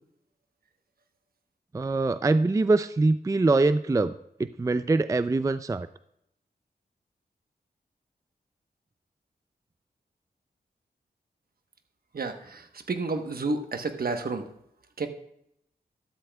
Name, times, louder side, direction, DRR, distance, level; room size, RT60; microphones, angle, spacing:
voice 1, 1.7-4.1 4.4-5.9, right 3 dB, 20° right, 13 dB, 0.4 m, -23 dB
voice 2, 12.1-14.5 15.0-15.1, right 3 dB, 60° right, 6 dB, 1.1 m, -30 dB
12.5 x 12.5 x 2.3 m, 0.78 s
cardioid pair, 55°, 17 cm